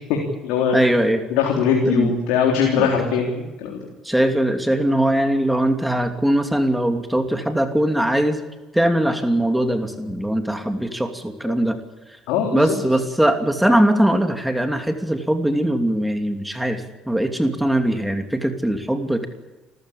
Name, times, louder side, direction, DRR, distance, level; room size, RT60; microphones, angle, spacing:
voice 1, 0.1-0.8 1.3-3.9 12.3-12.8, left 6 dB, 80° left, 1 dB, 3.6 m, -21 dB
voice 2, 0.7-1.2 1.8-2.1 2.8-2.9 4.0-8.4 8.7-11.8 12.5-19.3, right 1 dB, 5° right, 5 dB, 2.8 m, -21 dB
26.5 x 15.0 x 8.7 m, 1.1 s
supercardioid pair, 75°, 0 cm